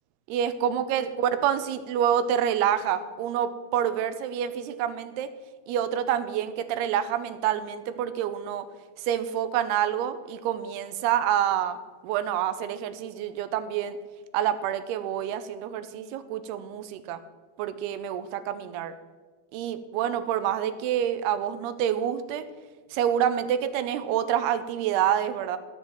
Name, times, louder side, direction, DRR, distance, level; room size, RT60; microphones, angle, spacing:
voice 1, 0.3-5.3 5.7-8.7 9.0-11.8 12.0-14.0 14.3-17.2 17.6-18.9 19.5-22.4 22.9-25.6, right 10 dB, 80° right, 11 dB, 2.6 m, -27 dB
17.0 x 7.3 x 4.5 m, 1.4 s
omnidirectional pair, 4.8 m